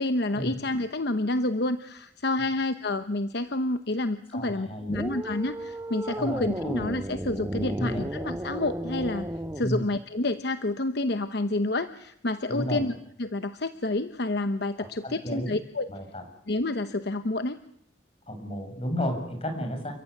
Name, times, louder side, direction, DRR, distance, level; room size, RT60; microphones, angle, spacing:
voice 1, 0.0-9.3 9.5-12.9 13.2-15.9 16.5-17.6, left 2 dB, 60° left, 10 dB, 1.0 m, -29 dB
voice 2, 4.3-5.1 6.2-6.7 7.7-7.9 9.6-9.8 12.5-12.8 14.8-15.6 15.9-16.2 18.3-19.9, equal, 30° left, 5 dB, 7.2 m, -32 dB
sound 1, 4.9-9.7, right 1 dB, 15° right, 1.2 m, -33 dB
29.5 x 15.5 x 9.8 m, 0.73 s
head